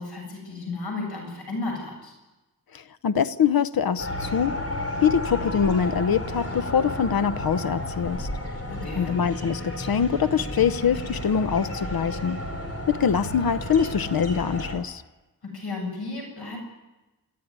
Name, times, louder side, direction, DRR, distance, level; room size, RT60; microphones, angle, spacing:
voice 1, 0.0-2.1 8.7-9.2 15.4-16.6, left 3 dB, 85° left, 1 dB, 7.6 m, -33 dB
voice 2, 2.7-4.6 5.0-8.3 9.0-12.4 12.9-15.0, left 7 dB, 65° left, 14 dB, 0.8 m, -24 dB
sound 1, 4.0-14.8, left 1 dB, 40° left, 4.7 m, -32 dB
30.0 x 14.0 x 9.6 m, 1.1 s
wide cardioid pair, 110°, 38 cm